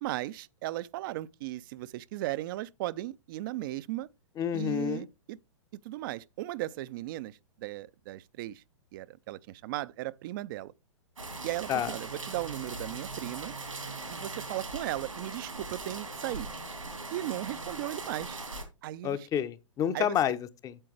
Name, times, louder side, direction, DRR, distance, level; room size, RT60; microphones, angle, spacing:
voice 1, 0.0-4.1 4.5-5.4 5.8-8.6 8.9-10.7 11.4-13.5 14.1-16.5 17.1-18.4 18.8-19.3 19.9-20.2, right 16 dB, 45° right, 0.4 m, -36 dB
voice 2, 4.4-5.1 11.7-11.9 19.0-20.8, left 9 dB, 20° left, 0.7 m, -29 dB
sound 1, 11.2-18.6, right 3 dB, 90° right, 2.8 m, -40 dB
8.8 x 7.5 x 3.2 m
figure-of-eight pair, 110°, 16 cm